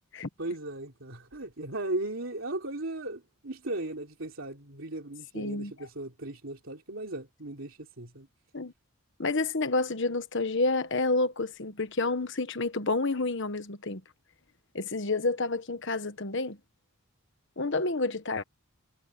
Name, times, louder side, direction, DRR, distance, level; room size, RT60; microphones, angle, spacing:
voice 1, 0.4-8.3, right 2 dB, 65° right, 3.5 m, -37 dB
voice 2, 5.3-5.7 8.5-8.7 9.2-14.0 14.7-16.6 17.6-18.4, left 3 dB, 55° left, 1.3 m, -29 dB
head